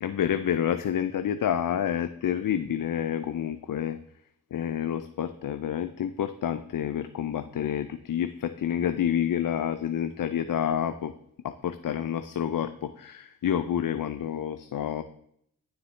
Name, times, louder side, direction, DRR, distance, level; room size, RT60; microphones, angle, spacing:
voice 1, 0.0-4.0 4.5-11.1 11.4-15.0, left 9 dB, 60° left, 11 dB, 0.5 m, -29 dB
9.6 x 6.7 x 3.3 m, 0.71 s
cardioid pair, 60°, 37 cm